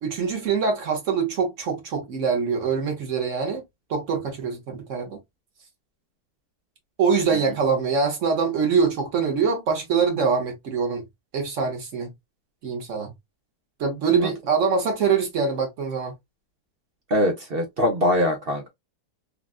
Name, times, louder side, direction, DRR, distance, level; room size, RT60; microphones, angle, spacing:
voice 1, 0.0-3.6 3.9-5.2 7.0-11.0 11.3-12.1 12.6-13.1 13.8-16.1, right 5 dB, 50° right, 1.1 m, -24 dB
voice 2, 17.1-18.7, left 1 dB, 70° right, 0.5 m, -23 dB
3.7 x 2.3 x 2.3 m
omnidirectional pair, 1.9 m